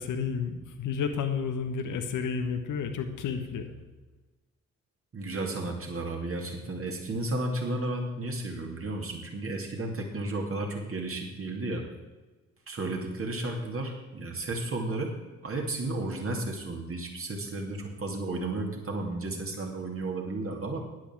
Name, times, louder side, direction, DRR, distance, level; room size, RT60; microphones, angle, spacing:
voice 1, 0.0-3.7, left 6 dB, 55° left, 7 dB, 1.3 m, -31 dB
voice 2, 5.1-11.8 12.7-15.1 15.4-20.8, right 2 dB, 35° right, 1 dB, 2.8 m, -33 dB
12.0 x 10.5 x 4.7 m, 1.2 s
figure-of-eight pair, 40°, 37 cm